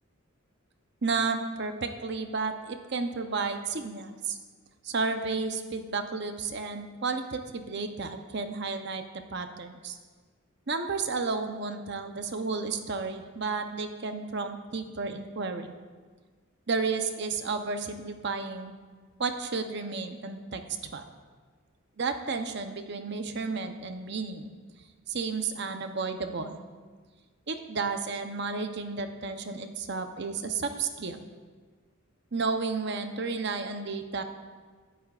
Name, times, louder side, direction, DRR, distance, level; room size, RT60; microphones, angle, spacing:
voice 1, 1.0-4.4 4.8-9.0 9.3-10.0 10.7-15.7 16.7-18.8 19.2-20.6 20.9-21.0 22.0-24.5 25.1-26.6 27.5-31.3 32.3-34.2, right 4 dB, 55° right, 6 dB, 0.8 m, -32 dB
24.5 x 8.4 x 2.5 m, 1.5 s
head